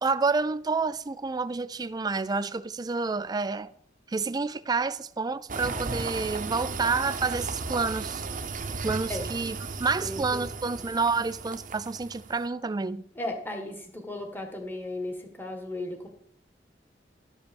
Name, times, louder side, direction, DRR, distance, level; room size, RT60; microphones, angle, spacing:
voice 1, 0.0-3.7 4.1-8.2 8.8-13.0, right 4 dB, 20° right, 0.4 m, -29 dB
sound 1, 5.5-12.4, right 4 dB, 45° right, 0.8 m, -35 dB
voice 2, 10.0-10.8 13.1-16.1, left 1 dB, 10° left, 1.7 m, -36 dB
12.0 x 5.2 x 7.1 m
head